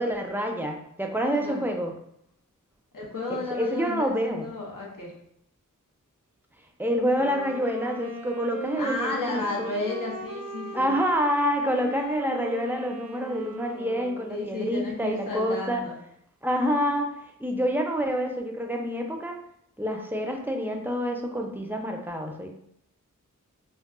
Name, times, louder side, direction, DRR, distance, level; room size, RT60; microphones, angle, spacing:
voice 1, 0.0-1.9 3.3-4.5 6.8-9.7 10.7-15.8 16.4-17.1 17.4-19.4 19.8-22.5, equal, 5° right, 2 dB, 0.4 m, -27 dB
voice 2, 2.9-5.1 8.8-10.9 14.3-16.0, left 2 dB, 75° left, -3 dB, 0.9 m, -32 dB
Wind instrument woodwind instrument, 7.0-14.7, right 3 dB, 85° right, 0.5 m, -39 dB
2.3 x 2.2 x 3.7 m, 0.71 s
wide cardioid pair, 45°, 32 cm